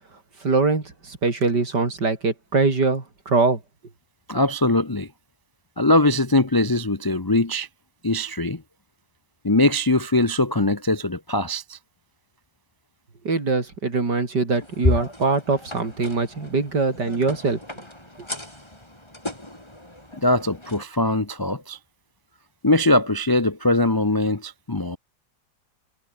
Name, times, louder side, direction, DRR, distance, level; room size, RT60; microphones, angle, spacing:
voice 1, 0.4-3.6 13.2-17.6, right 3 dB, 60° right, 4.6 m, -22 dB
voice 2, 4.3-5.1 5.8-7.7 8.0-8.6 9.4-11.8 20.2-21.8 22.6-25.0, left 2 dB, 30° left, 0.4 m, -21 dB
sound 1, 14.5-20.8, left 1 dB, 15° left, 5.1 m, -40 dB
omnidirectional pair, 2.0 m